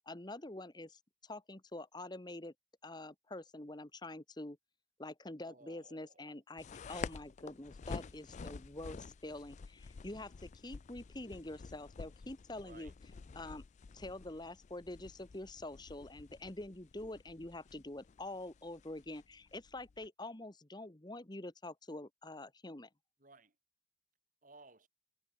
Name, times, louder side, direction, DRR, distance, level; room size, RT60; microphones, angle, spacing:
voice 1, 0.1-2.5 2.8-4.6 5.0-12.9 13.3-13.6 13.9-22.9, left 2 dB, 25° left, 1.3 m, -46 dB
voice 2, 5.4-6.4 12.6-12.9 23.2-23.5 24.4-24.9, right 3 dB, 45° right, 3.3 m, -59 dB
sound 1, 6.6-20.1, left 5 dB, 40° left, 0.4 m, -50 dB
head